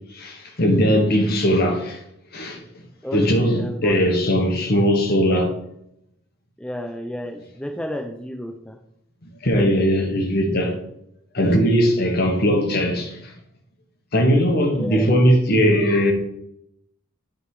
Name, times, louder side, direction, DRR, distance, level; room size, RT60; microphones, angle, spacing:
voice 1, 0.1-2.0 2.3-2.6 3.1-5.5 9.4-10.8 11.3-13.3 14.1-16.1, equal, 45° left, 1.4 m, -19 dB
voice 2, 3.0-4.2 6.6-8.8 11.9-12.0 14.7-15.0, equal, 5° left, 0.5 m, -32 dB
8.6 x 3.8 x 4.8 m
head